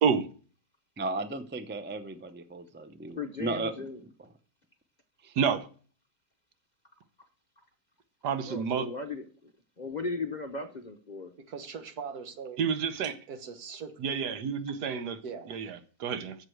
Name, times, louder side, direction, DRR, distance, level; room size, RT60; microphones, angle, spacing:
voice 1, 1.0-4.3 5.2-5.4, right 2 dB, 15° right, 0.3 m, -36 dB
voice 2, 3.2-3.9 8.5-9.2 9.8-11.3, left 3 dB, 35° left, 0.7 m, -36 dB
voice 3, 5.3-5.7 8.2-8.9 12.6-13.1 14.0-15.2 15.5-16.4, right 6 dB, 85° right, 1.5 m, -29 dB
voice 4, 11.5-12.6 13.3-14.0 15.2-15.6, right 6 dB, 70° right, 1.8 m, -41 dB
7.8 x 7.4 x 6.5 m
omnidirectional pair, 1.7 m